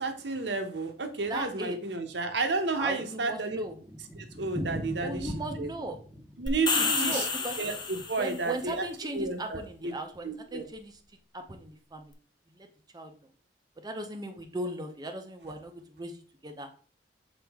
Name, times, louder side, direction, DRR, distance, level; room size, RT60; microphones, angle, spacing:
voice 1, 0.0-3.6 4.2-5.3 5.6-5.7 6.4-7.3 7.6-8.8 9.1-9.9 10.2-10.6, right 3 dB, 70° right, 7 dB, 0.9 m, -32 dB
voice 2, 1.3-1.8 2.8-3.8 5.0-6.0 6.7-7.6 8.2-10.9 11.3-12.1 12.9-13.1 13.8-16.1 16.4-16.7, right 1 dB, 25° right, 6 dB, 0.7 m, -37 dB
Thunder, 3.0-8.9 9.2-9.3 9.6-9.7 9.9-10.0 10.6-10.9, equal, ahead, 1.0 m, -41 dB
sound 1, 6.5-8.4, left 4 dB, 25° left, 0.7 m, -29 dB
6.1 x 4.4 x 3.5 m, 0.41 s
head